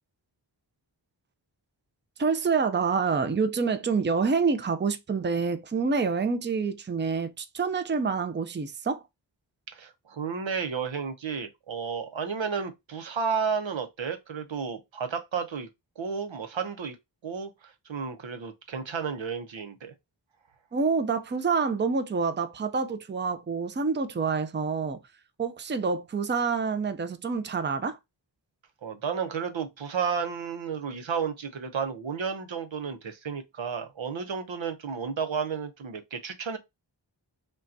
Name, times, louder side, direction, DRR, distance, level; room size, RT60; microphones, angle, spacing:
voice 1, 2.2-9.0 20.7-25.0 25.4-28.0, right 5 dB, 25° right, 0.5 m, -27 dB
voice 2, 9.7-15.7 16.0-16.9 17.2-19.9 28.8-36.6, right 6 dB, 90° right, 0.7 m, -32 dB
5.2 x 2.3 x 2.6 m
wide cardioid pair, 40°, 45 cm